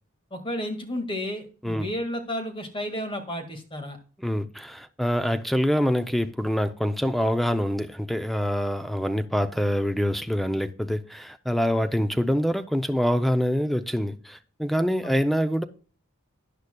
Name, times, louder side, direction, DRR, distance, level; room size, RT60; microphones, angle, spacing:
voice 1, 0.3-4.0 15.0-15.2, equal, 25° left, 1.8 m, -32 dB
voice 2, 4.2-15.6, equal, ahead, 0.5 m, -25 dB
13.0 x 9.8 x 2.2 m
head